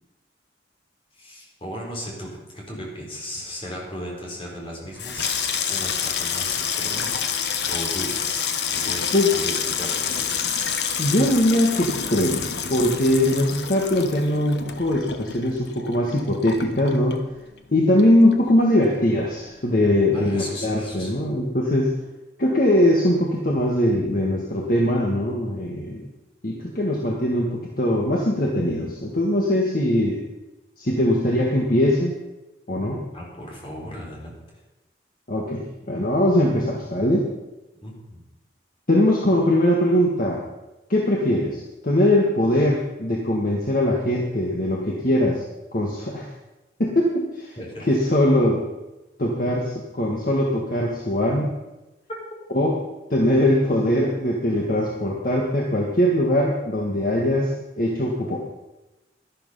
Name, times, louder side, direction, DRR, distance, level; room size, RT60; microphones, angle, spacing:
voice 1, 1.2-10.7 20.1-21.2 33.1-34.4 37.8-38.2 47.6-47.9, equal, 30° left, -2 dB, 4.1 m, -36 dB
Water tap faucet / Sink (filling or washing), 4.8-17.7 18.0-18.6 18.9-19.2, left 7 dB, 70° left, 1.1 m, -28 dB
voice 2, 11.0-12.4 12.7-17.2 17.7-21.9 22.4-26.0 26.4-30.2 30.8-32.1 32.7-33.0 35.3-37.3 38.9-40.4 40.9-45.4 45.7-46.3 46.8-47.6 47.9-48.7 49.2-51.5 52.5-52.8 53.1-58.4, left 1 dB, 50° left, -1 dB, 1.8 m, -21 dB
12.0 x 12.0 x 5.7 m, 1.0 s
head